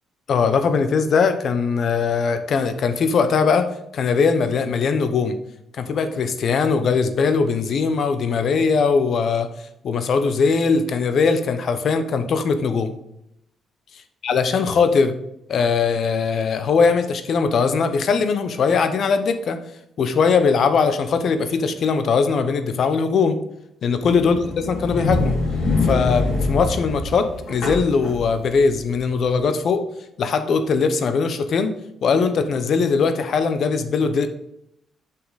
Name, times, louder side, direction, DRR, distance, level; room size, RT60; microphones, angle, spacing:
voice 1, 0.3-3.7 3.9-5.3 5.7-9.5 9.8-12.9 14.2-15.2 15.5-19.6 20.0-23.4 23.8-25.4 25.8-29.8 30.2-31.7 32.0-34.3, left 5 dB, 60° left, 9 dB, 0.8 m, -20 dB
sound 1, 24.0-29.0, left 3 dB, 90° left, 3.2 m, -24 dB
8.2 x 5.7 x 4.0 m, 0.78 s
cardioid pair, 90°, 0 cm